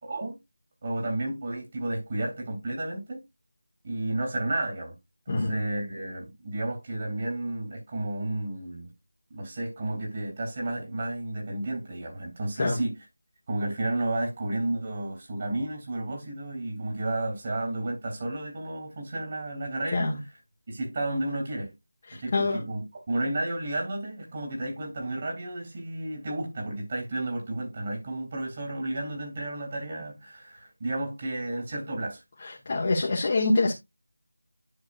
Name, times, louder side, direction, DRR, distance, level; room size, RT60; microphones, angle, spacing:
voice 1, 0.0-0.4 0.8-3.2 3.8-4.9 5.3-8.9 9.3-13.0 13.5-20.4 20.7-21.7 22.1-32.2, right 1 dB, 35° right, 3.1 m, -32 dB
voice 2, 22.1-22.6 32.6-33.7, left 2 dB, 35° left, 1.6 m, -25 dB
10.5 x 6.2 x 2.5 m
figure-of-eight pair, 170°, 0 cm